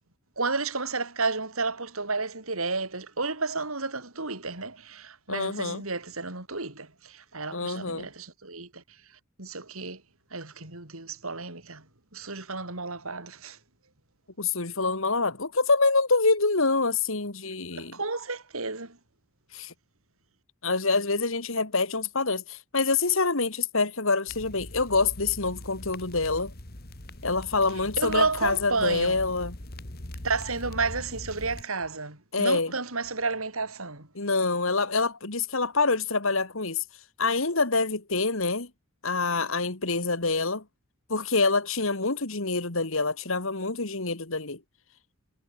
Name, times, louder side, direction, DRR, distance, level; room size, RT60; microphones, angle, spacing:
voice 1, 0.4-8.8 9.4-10.0 10.3-11.8 12.1-13.6 17.8-19.0 28.0-29.2 30.2-34.1, right 3 dB, 80° right, 5.2 m, -31 dB
voice 2, 5.3-5.8 7.5-8.1 14.4-18.0 19.5-19.7 20.6-26.5 27.2-29.6 32.3-32.7 34.2-36.8 37.2-38.7 39.0-40.6 41.1-44.6, left 3 dB, 70° left, 2.4 m, -26 dB
sound 1, 24.3-31.7, left 1 dB, 45° left, 2.6 m, -41 dB
head